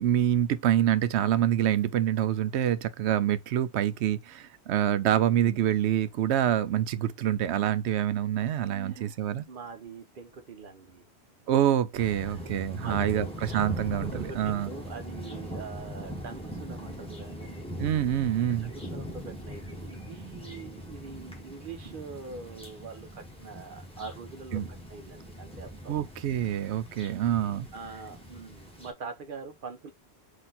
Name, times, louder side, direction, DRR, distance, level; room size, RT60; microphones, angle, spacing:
voice 1, 0.0-9.5 11.5-14.7 17.8-18.7 24.5-24.7 25.9-27.7, right 11 dB, 85° right, 0.8 m, -26 dB
voice 2, 8.8-9.2 9.5-11.1 12.2-12.4 12.8-13.3 14.1-17.7 18.6-24.6 24.9-25.9 27.7-29.9, right 4 dB, 55° right, 1.0 m, -43 dB
sound 1, 11.9-28.9, equal, 5° left, 1.2 m, -40 dB
4.3 x 2.8 x 3.8 m
omnidirectional pair, 1.1 m